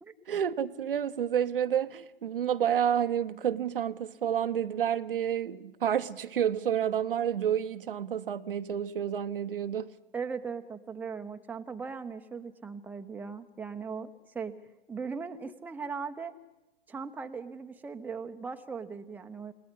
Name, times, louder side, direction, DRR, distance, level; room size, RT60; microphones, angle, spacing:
voice 1, 0.3-9.9, right 9 dB, 65° right, 1.1 m, -29 dB
voice 2, 10.1-14.5 14.9-16.3 16.9-19.5, right 5 dB, 5° right, 0.9 m, -38 dB
28.5 x 19.0 x 9.9 m
figure-of-eight pair, 115°, 29 cm